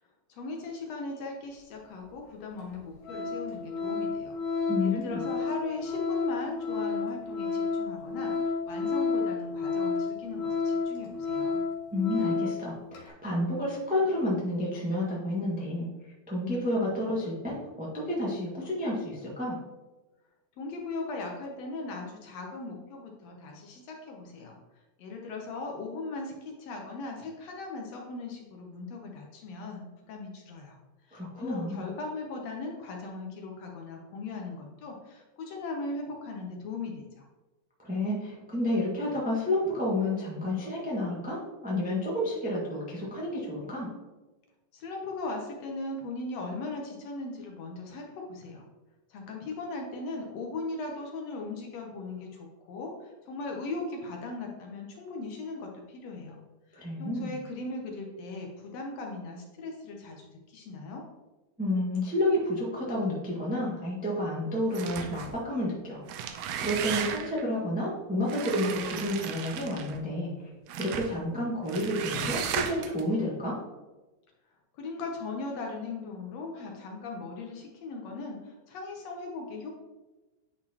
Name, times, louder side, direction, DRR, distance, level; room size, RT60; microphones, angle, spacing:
voice 1, 0.3-4.3 4.8-11.6 20.6-24.6 25.0-30.8 31.1-37.3 44.7-48.6 49.1-56.4 56.7-61.0 74.8-79.7, left 3 dB, 70° left, 1 dB, 1.9 m, -38 dB
Organ, 2.0-2.1 2.6-2.8 3.0-12.6 12.9-13.1, left 4 dB, 90° left, 2.7 m, -31 dB
voice 2, 4.7-5.2 11.9-15.9 16.3-19.6 31.1-31.8 37.8-43.9 56.7-57.3 61.6-70.3 70.8-73.6, left 1 dB, 5° right, -5 dB, 0.7 m, -30 dB
sound 1, 64.7-65.4 66.0-67.4 68.3-70.0 70.7-71.1 71.7-73.0, right 8 dB, 80° right, 1.5 m, -35 dB
9.7 x 4.2 x 2.9 m, 1.1 s
omnidirectional pair, 3.4 m